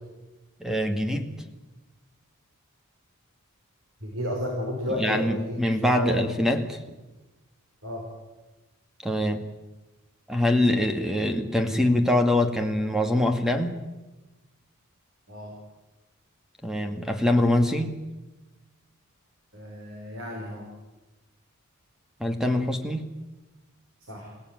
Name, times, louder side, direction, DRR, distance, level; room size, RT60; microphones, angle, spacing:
voice 1, 0.6-1.4 4.9-6.8 9.0-9.4 10.3-13.8 16.6-18.0 22.2-23.1, left 1 dB, ahead, 6 dB, 2.2 m, -24 dB
voice 2, 4.0-5.6 6.0-6.3 7.8-8.1 15.3-15.5 19.5-20.7 24.1-24.3, equal, 60° right, 0 dB, 5.8 m, -32 dB
28.0 x 17.0 x 9.4 m, 1.1 s
head